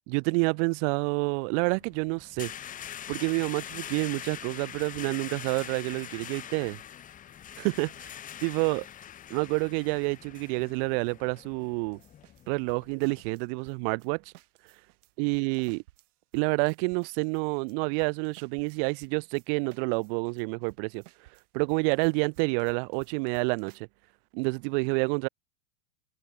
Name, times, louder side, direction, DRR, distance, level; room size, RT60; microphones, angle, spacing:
voice 1, 0.1-2.5 3.1-6.8 7.6-8.1 8.4-8.9 9.3-12.0 12.5-14.2 15.2-15.8 16.3-21.0 21.5-23.9 24.3-25.3, right 37 dB, 40° right, 0.4 m, -28 dB
sound 1, 1.6-13.2, left 10 dB, 20° left, 0.6 m, -43 dB
sound 2, 11.9-14.1 14.3-23.8, right 16 dB, 70° right, 1.3 m, -57 dB
hypercardioid pair, 105°, 45 cm